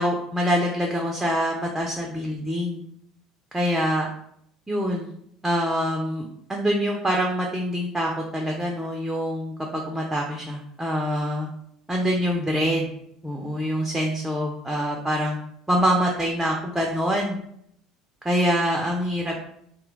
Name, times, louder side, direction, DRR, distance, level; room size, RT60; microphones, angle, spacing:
voice 1, 0.0-2.8 3.5-4.1 4.7-5.1 5.4-11.5 11.9-12.9 13.2-15.4 15.7-17.4 18.2-19.4, equal, 5° right, 0 dB, 0.5 m, -25 dB
2.2 x 2.1 x 3.7 m, 0.70 s
figure-of-eight pair, 65°, 2 cm